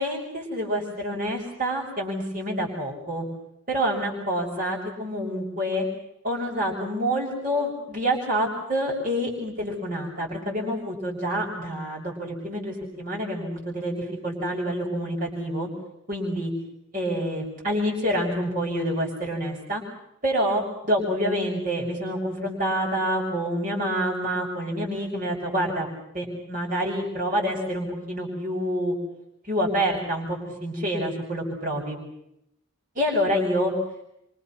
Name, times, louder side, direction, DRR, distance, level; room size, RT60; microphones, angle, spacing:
voice 1, 0.0-3.2 3.7-5.9 6.2-15.7 16.1-16.5 16.9-19.8 20.2-25.9 26.1-28.9 29.4-32.0 32.9-33.7, equal, 40° right, -2 dB, 6.6 m, -27 dB
29.0 x 26.0 x 6.0 m, 0.79 s
head